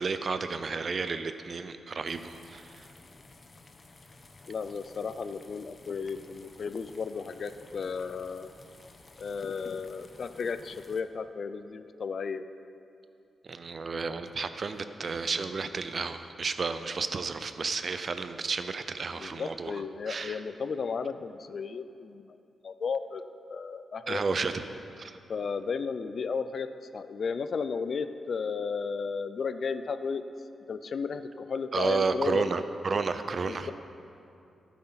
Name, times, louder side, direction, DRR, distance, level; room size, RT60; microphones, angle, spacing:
voice 1, 0.0-2.9 13.4-19.8 20.1-20.4 24.1-24.6 25.0-25.2 31.7-33.7, right 4 dB, 50° right, 10 dB, 0.5 m, -32 dB
sound 1, 2.1-11.0, left 3 dB, 40° left, 0.8 m, -54 dB
voice 2, 4.5-8.5 9.2-12.4 19.2-22.3 22.6-23.2 23.5-24.2 25.3-26.7 26.9-30.2 30.7-32.5 33.5-33.7, left 5 dB, 60° left, 11 dB, 0.4 m, -34 dB
11.5 x 9.5 x 4.0 m, 2.6 s
cardioid pair, 65°, 0 cm